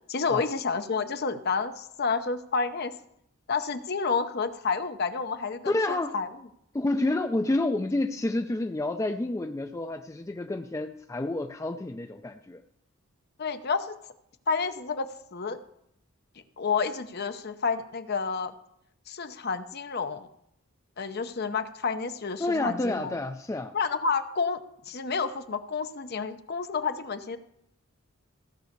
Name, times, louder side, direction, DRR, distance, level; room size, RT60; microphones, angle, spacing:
voice 1, 0.1-2.9 3.5-6.3 13.4-14.0 14.5-15.6 16.6-18.5 19.1-20.3 21.0-23.2 23.7-24.6 24.9-27.4, left 5 dB, 45° left, 9 dB, 0.7 m, -30 dB
voice 2, 5.7-6.1 6.7-12.6 22.4-23.7, left 2 dB, 15° left, 6 dB, 0.3 m, -29 dB
15.5 x 5.5 x 6.6 m, 0.74 s
head